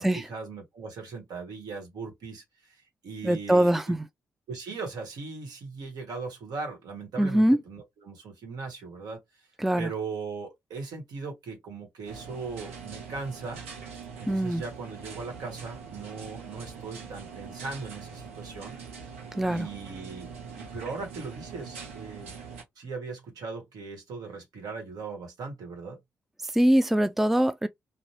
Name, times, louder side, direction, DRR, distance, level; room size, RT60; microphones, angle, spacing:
voice 1, 0.0-3.9 4.5-9.2 9.8-13.6 14.2-18.8 19.5-22.3 22.8-26.0, right 4 dB, 65° right, 1.1 m, -39 dB
voice 2, 3.2-4.0 7.2-7.6 9.6-9.9 14.3-14.6 19.4-19.7 26.4-27.7, right 1 dB, 5° right, 0.3 m, -23 dB
sound 1, 12.1-22.6, right 5 dB, 90° right, 0.6 m, -43 dB
2.6 x 2.1 x 3.0 m
hypercardioid pair, 40°, 7 cm